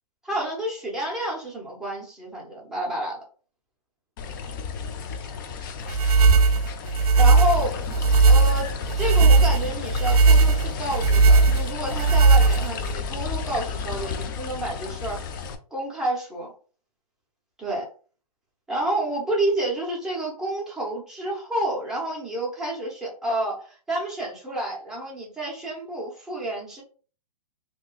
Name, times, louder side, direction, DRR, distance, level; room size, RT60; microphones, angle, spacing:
voice 1, 0.2-3.2 7.2-7.8 8.2-15.2 15.7-16.5 17.6-17.8 18.7-26.8, right 1 dB, ahead, -5 dB, 0.9 m, -29 dB
sound 1, 4.2-15.6, left 5 dB, 30° left, 0.4 m, -33 dB
sound 2, 5.9-12.9, right 4 dB, 65° right, 0.4 m, -17 dB
3.5 x 2.6 x 2.4 m, 0.39 s
hypercardioid pair, 150°, 21 cm